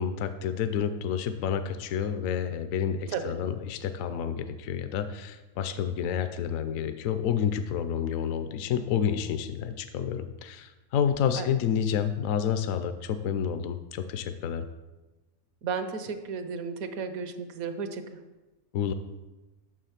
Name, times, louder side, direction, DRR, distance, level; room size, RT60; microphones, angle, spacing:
voice 1, 0.0-14.7 18.7-18.9, left 8 dB, 70° left, 10 dB, 1.0 m, -29 dB
voice 2, 15.6-18.2, right 5 dB, 75° right, 9 dB, 1.3 m, -34 dB
9.0 x 6.9 x 5.7 m, 1.1 s
omnidirectional pair, 1.5 m